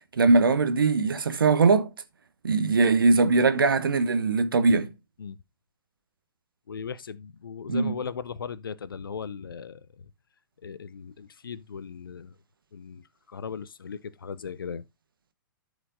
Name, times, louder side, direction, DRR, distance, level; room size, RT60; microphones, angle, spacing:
voice 1, 0.1-1.9 2.4-4.9 7.7-8.0, right 4 dB, 70° right, 1.0 m, -21 dB
voice 2, 6.7-9.8 10.6-12.3 12.7-13.0 13.3-14.8, left 6 dB, 70° left, 0.7 m, -37 dB
14.0 x 5.1 x 2.6 m
figure-of-eight pair, 105°, 12 cm